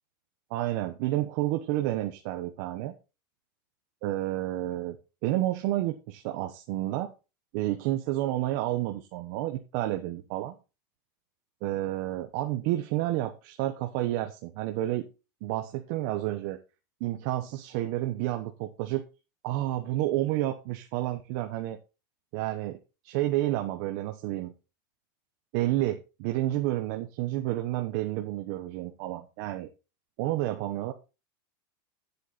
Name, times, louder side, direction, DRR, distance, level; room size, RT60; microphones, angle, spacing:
voice 1, 0.5-2.9 4.0-5.0 5.2-7.1 7.5-10.5 11.6-15.1 15.4-16.6 17.0-19.0 19.4-21.8 22.3-22.8 23.0-24.5 25.5-29.7 30.2-30.9, right 15 dB, 45° right, 5 dB, 1.0 m, -30 dB
10.0 x 8.2 x 4.2 m, 0.30 s
supercardioid pair, 165°, 12 cm